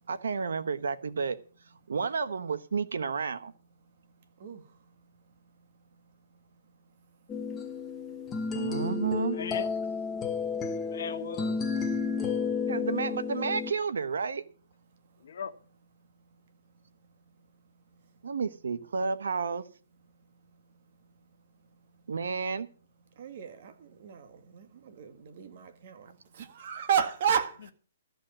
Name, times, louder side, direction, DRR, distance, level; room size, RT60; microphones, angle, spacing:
voice 1, 0.1-1.4 1.9-3.5 8.5-9.4 12.7-14.4 18.2-19.6 22.1-22.7, right 5 dB, 85° right, 1.2 m, -31 dB
sound 1, 7.3-13.7, left 5 dB, 15° left, 1.1 m, -32 dB
voice 2, 9.2-9.7 10.7-11.6 15.2-15.5, left 7 dB, 60° left, 1.6 m, -38 dB
voice 3, 23.2-27.7, right 8 dB, 50° right, 1.9 m, -32 dB
13.5 x 5.3 x 8.7 m
hypercardioid pair, 160°, 0 cm